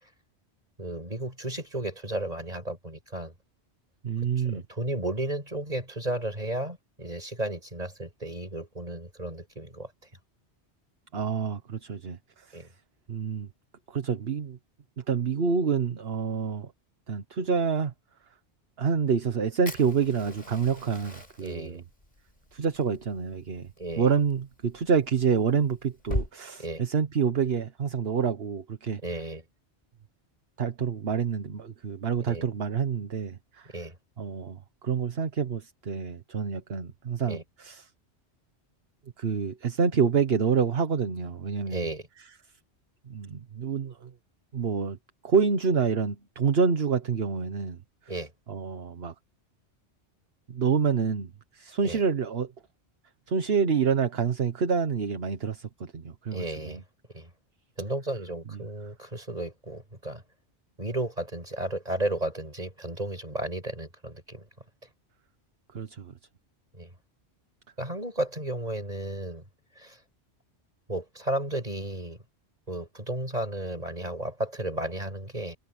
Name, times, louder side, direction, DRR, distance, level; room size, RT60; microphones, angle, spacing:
voice 1, 0.8-3.3 4.4-9.9 12.5-12.7 21.4-21.8 23.8-24.1 26.6-26.8 29.0-29.4 32.3-32.5 33.7-34.0 37.3-37.4 41.7-42.0 48.1-48.3 51.8-52.0 56.3-56.8 57.1-57.3 57.8-60.2 60.8-64.5 66.7-66.9 67.8-69.4 69.8-70.0 70.9-72.2 72.7-75.6, right 1 dB, 35° right, 6.9 m, -33 dB
voice 2, 4.0-4.6 11.1-12.7 13.1-13.5 13.9-14.6 15.0-16.7 17.1-17.9 18.8-21.8 22.5-23.7 24.0-29.2 30.6-33.8 34.2-37.9 39.2-41.9 43.1-44.1 44.5-45.0 45.2-47.8 48.5-49.1 50.5-52.5 53.3-56.8 58.5-58.6 65.7-66.1, right 6 dB, 60° right, 1.4 m, -27 dB
Fire, 19.6-26.3, left 1 dB, 40° left, 6.3 m, -40 dB
omnidirectional pair, 1.2 m